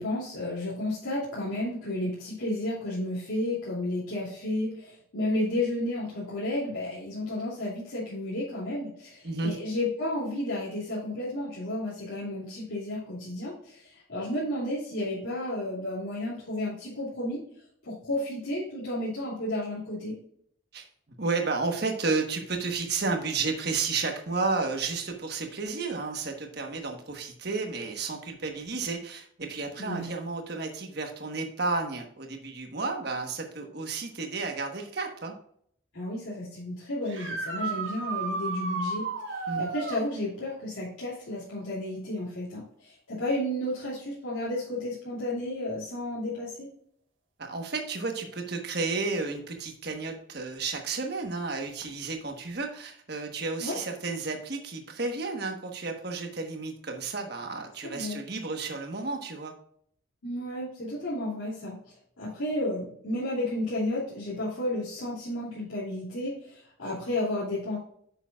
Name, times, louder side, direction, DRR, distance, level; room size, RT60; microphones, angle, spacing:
voice 1, 0.0-17.4 17.8-20.2 29.8-30.1 35.9-46.7 53.6-53.8 57.8-58.2 60.2-61.8 62.2-67.8, left 1 dB, 90° left, -8 dB, 2.8 m, -32 dB
voice 2, 9.2-9.6 20.7-20.9 21.2-35.3 39.5-39.7 47.4-59.5, right 4 dB, 50° right, 3 dB, 1.3 m, -32 dB
sound 1, 37.0-40.0 43.3-43.4 45.5-45.6 51.8-51.9, right 3 dB, 70° right, 1.6 m, -33 dB
9.3 x 6.8 x 2.4 m, 0.65 s
head